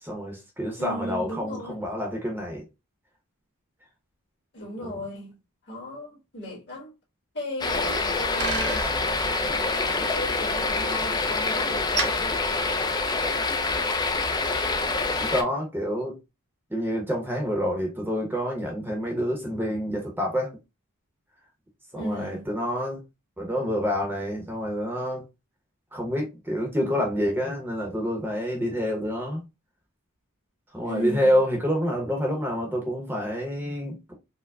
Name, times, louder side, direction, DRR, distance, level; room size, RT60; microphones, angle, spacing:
voice 1, 0.0-2.6 4.8-5.0 15.2-16.2 16.7-20.5 21.9-23.0 23.4-25.2 25.9-29.4 30.7-34.1, equal, 10° right, 0.7 m, -28 dB
voice 2, 0.8-1.8 4.5-5.4 5.7-6.9 7.3-12.1 21.9-22.5 30.8-31.4, equal, 50° left, 1.4 m, -36 dB
sound 1, 7.6-15.4, left 3 dB, 20° left, 0.4 m, -26 dB
Bicycle, 7.7-13.4, right 3 dB, 50° right, 0.8 m, -36 dB
4.5 x 2.1 x 2.2 m
head